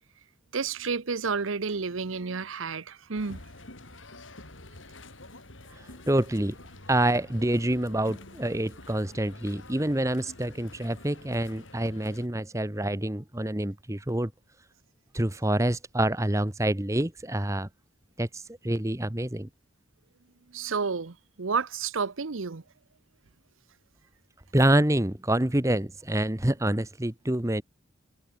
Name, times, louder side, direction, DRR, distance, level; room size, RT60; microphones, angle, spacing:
voice 1, 0.5-3.4 20.5-22.6, right 5 dB, 85° right, 0.9 m, -30 dB
sound 1, 3.1-12.3, left 2 dB, 75° left, 6.6 m, -48 dB
voice 2, 6.1-6.5 6.9-14.3 15.1-17.7 18.2-19.5 24.5-27.6, right 1 dB, 15° right, 1.0 m, -27 dB
head